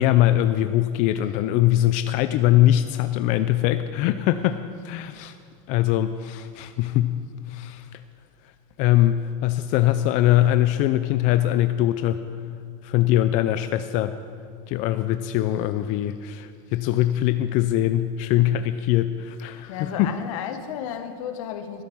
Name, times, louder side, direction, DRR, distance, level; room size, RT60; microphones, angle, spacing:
voice 1, 0.0-5.4 5.7-8.0 8.8-12.3 12.8-14.2 14.7-20.2, left 13 dB, 45° left, 10 dB, 0.4 m, -22 dB
voice 2, 19.7-21.8, left 8 dB, 75° left, 8 dB, 1.2 m, -33 dB
12.5 x 9.8 x 6.1 m, 2.2 s
supercardioid pair, 150°, 17 cm